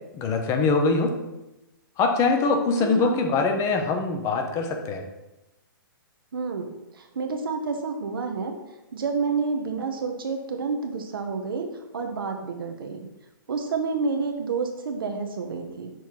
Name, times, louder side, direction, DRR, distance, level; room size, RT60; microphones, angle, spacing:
voice 1, 0.1-1.1 2.0-5.0, left 4 dB, 25° left, 4 dB, 0.8 m, -23 dB
voice 2, 2.8-3.2 6.3-8.6 8.9-11.7 11.9-13.1 13.5-15.9, right 4 dB, 75° right, 4 dB, 0.8 m, -29 dB
6.2 x 3.4 x 4.6 m, 0.97 s
hypercardioid pair, 130°, 12 cm